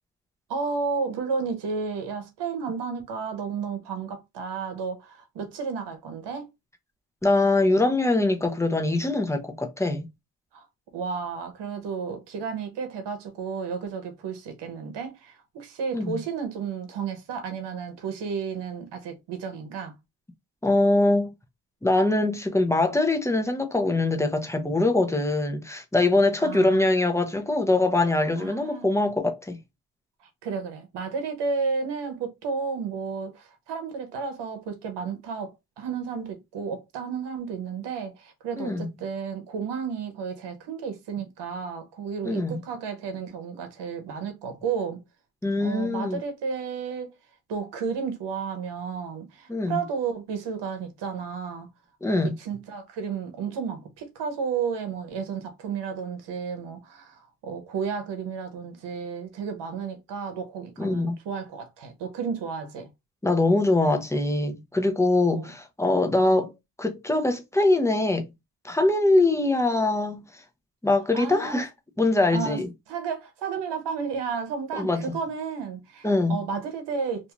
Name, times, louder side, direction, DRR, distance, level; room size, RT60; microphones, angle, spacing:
voice 1, 0.5-6.5 10.5-10.7 10.9-19.9 26.4-26.9 28.4-28.9 30.2-35.5 35.8-45.0 45.6-47.2 47.5-51.7 52.1-62.9 65.3-65.5 71.1-71.7 72.3-77.3, right 5 dB, 90° right, 0.9 m, -32 dB
voice 2, 7.2-10.1 15.9-16.2 20.6-21.3 21.8-29.6 38.6-38.9 42.2-42.6 45.4-46.2 49.5-49.8 52.0-52.4 60.8-61.2 63.2-66.5 66.8-68.3 68.6-70.2 70.8-71.7 72.0-72.7 74.7-75.2 76.0-76.4, left 2 dB, 5° left, 0.6 m, -23 dB
2.6 x 2.3 x 3.0 m
cardioid pair, 90°, 40 cm